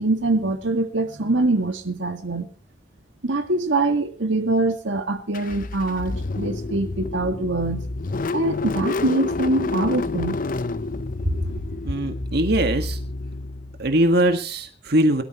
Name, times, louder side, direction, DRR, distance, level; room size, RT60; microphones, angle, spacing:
voice 1, 0.0-2.5 3.2-7.9 8.3-10.4, right 2 dB, 90° right, 1.9 m, -23 dB
Car / Engine starting, 5.3-14.1, left 2 dB, 50° left, 0.8 m, -29 dB
voice 2, 11.8-13.0 13.8-15.2, right 1 dB, 60° right, 1.8 m, -21 dB
22.5 x 13.0 x 3.1 m
head